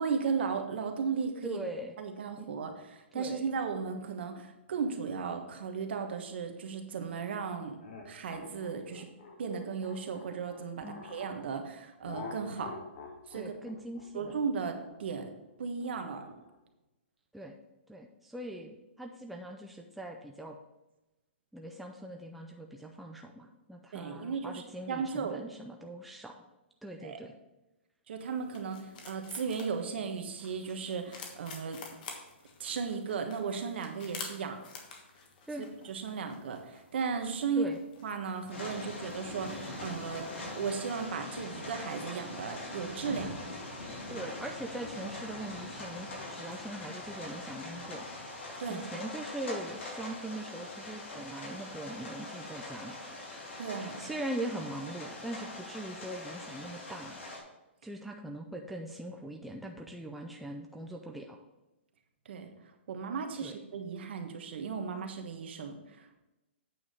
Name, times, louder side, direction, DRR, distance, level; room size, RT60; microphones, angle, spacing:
voice 1, 0.0-1.6 2.0-7.8 8.0-9.1 9.4-12.8 13.3-13.5 14.1-15.3 15.6-16.3 23.9-25.4 27.0-27.2 28.1-31.8 32.6-34.6 35.8-37.7 38.0-40.2 40.5-43.3 48.6-48.8 53.6-54.0 62.3-62.5 62.9-66.2, right 5 dB, 60° right, 5 dB, 1.3 m, -35 dB
voice 2, 1.4-2.0 2.4-2.5 3.1-3.5 10.8-11.1 13.3-14.4 17.3-17.5 17.9-20.6 21.5-26.4 26.8-27.3 35.5-35.6 37.6-37.8 44.1-48.1 48.7-53.0 53.8-57.2 57.8-61.4 63.4-63.6, right 1 dB, ahead, 1 dB, 0.4 m, -41 dB
sound 1, 7.8-11.4 12.0-16.5, left 4 dB, 60° left, 1.8 m, -47 dB
sound 2, 28.2-41.1, left 5 dB, 45° left, 1.4 m, -50 dB
sound 3, 38.5-57.4, left 2 dB, 85° left, 3.1 m, -42 dB
8.6 x 4.8 x 5.3 m, 0.98 s
hypercardioid pair, 160°, 7 cm